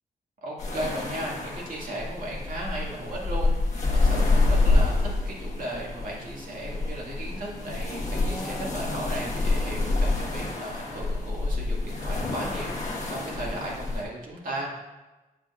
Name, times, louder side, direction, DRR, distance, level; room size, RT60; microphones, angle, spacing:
voice 1, 0.4-14.8, right 1 dB, 60° right, -3 dB, 2.0 m, -36 dB
sound 1, 0.6-14.0, left 3 dB, 50° left, 1.4 m, -27 dB
Livestock farm animals working animals, 6.0-9.3, left 1 dB, ahead, 0.8 m, -44 dB
8.4 x 7.8 x 2.5 m, 1.1 s
wide cardioid pair, 145°, 16 cm